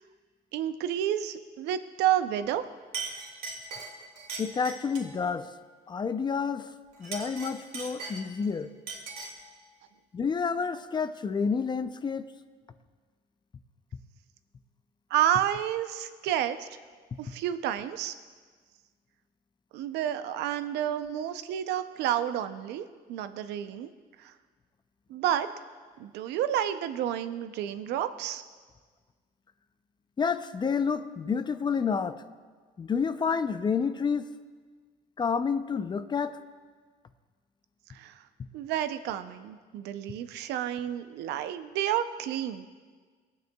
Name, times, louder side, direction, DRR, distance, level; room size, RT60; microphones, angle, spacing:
voice 1, 0.5-2.7 15.1-16.7 17.2-18.1 19.7-23.9 24.2-24.3 25.1-25.5 26.0-28.4 37.9-38.2 38.5-42.7, right 11 dB, 85° right, 11 dB, 0.5 m, -30 dB
Chink clink, 2.4-2.6 2.9-5.2 6.9-8.5 8.9-9.5, right 4 dB, 65° right, 2.0 m, -39 dB
voice 2, 4.4-5.5 5.9-6.7 7.0-8.7 10.1-12.3 30.2-32.2 32.8-34.3 35.2-36.4, left 5 dB, 25° left, 11 dB, 0.5 m, -29 dB
19.0 x 9.0 x 2.3 m, 1.5 s
cardioid pair, 110°, 17 cm